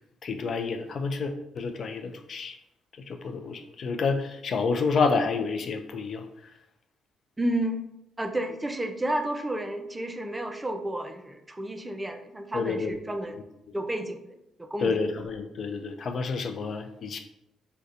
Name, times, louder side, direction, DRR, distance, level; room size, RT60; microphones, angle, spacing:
voice 1, 0.2-2.6 3.1-6.2 12.5-12.9 14.8-17.2, left 4 dB, 55° left, 6 dB, 0.4 m, -29 dB
voice 2, 7.4-7.9 8.2-13.4 13.7-15.0, right 1 dB, 15° right, 6 dB, 0.4 m, -31 dB
2.7 x 2.2 x 3.6 m, 0.87 s
cardioid pair, 90°, 0 cm